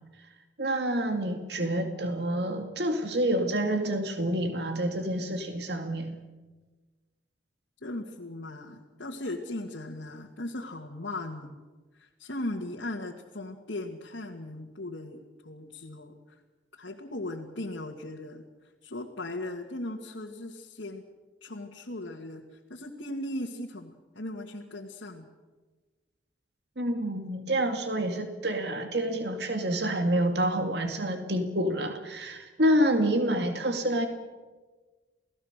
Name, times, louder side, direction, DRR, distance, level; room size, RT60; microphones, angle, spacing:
voice 1, 0.6-6.2 26.8-34.1, right 1 dB, 60° right, 5 dB, 2.2 m, -28 dB
voice 2, 7.8-11.6 11.9-16.4 16.8-18.5 18.8-21.0 21.4-25.3, left 1 dB, 75° left, -1 dB, 2.1 m, -38 dB
29.0 x 18.0 x 6.7 m, 1.3 s
head